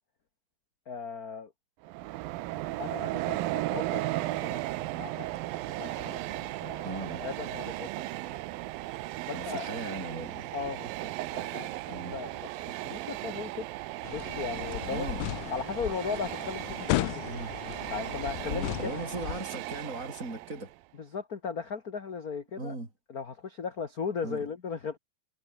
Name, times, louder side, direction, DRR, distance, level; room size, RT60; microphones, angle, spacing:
voice 1, 0.9-1.5 2.8-4.6 5.0-5.3 5.8-6.9 7.2-7.9 8.3-8.4 9.3-9.7 10.5-13.7 14.1-15.0 15.5-17.3 17.9-19.0 21.0-22.7 23.1-25.0, left 5 dB, 40° left, 1.3 m, -37 dB
Train, 1.8-20.7, right 17 dB, 80° right, 2.6 m, -36 dB
voice 2, 6.8-7.2 9.3-10.5 11.9-12.2 14.9-15.3 17.3-17.5 18.5-20.7 22.6-22.9 24.2-24.4, right 2 dB, 20° right, 4.6 m, -38 dB
sound 1, 14.0-19.4, left 19 dB, 90° left, 1.8 m, -35 dB
omnidirectional pair, 4.2 m